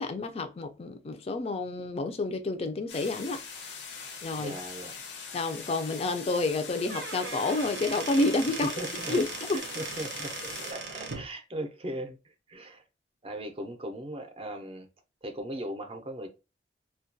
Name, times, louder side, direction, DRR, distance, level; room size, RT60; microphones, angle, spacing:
voice 1, 0.0-3.4 4.2-4.5 5.3-8.7 9.1-9.3, left 2 dB, 35° left, 0.3 m, -29 dB
sound 1, 2.9-10.7, left 5 dB, 90° left, 0.7 m, -42 dB
voice 2, 4.4-5.0 8.5-9.2 9.5-12.8 13.2-14.9 15.2-16.3, right 1 dB, 30° right, 0.5 m, -38 dB
Squeak / Wood, 6.7-11.3, right 4 dB, 80° right, 0.6 m, -38 dB
2.2 x 2.2 x 2.5 m
head